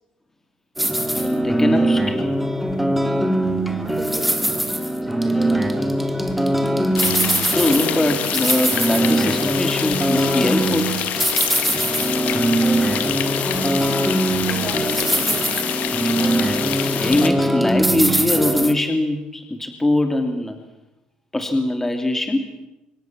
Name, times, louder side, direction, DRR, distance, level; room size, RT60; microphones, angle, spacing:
sound 1, 0.8-18.7, right 1 dB, 5° right, 2.7 m, -21 dB
voice 1, 1.2-2.3 7.5-10.9 16.9-20.6 21.3-22.7, left 2 dB, 10° left, 6 dB, 2.8 m, -22 dB
voice 2, 3.7-6.4 12.6-13.9 14.4-15.6, right 4 dB, 35° right, 3 dB, 7.7 m, -37 dB
sound 2, 7.0-17.3, left 9 dB, 65° left, 2.9 m, -26 dB
26.0 x 24.0 x 7.5 m, 0.93 s
cardioid pair, 100°, 3 cm